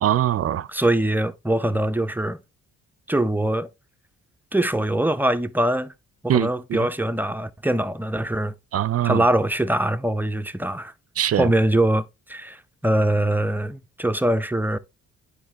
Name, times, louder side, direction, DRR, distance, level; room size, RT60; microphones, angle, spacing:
voice 1, 0.0-0.7 6.3-6.9 8.7-9.2 11.2-11.5, right 11 dB, 55° right, 0.5 m, -22 dB
voice 2, 0.7-2.4 3.1-3.7 4.5-5.9 6.2-8.5 9.0-10.9 11.4-14.8, right 1 dB, 5° right, 0.6 m, -23 dB
8.8 x 5.1 x 3.0 m
cardioid pair, 80°, 29 cm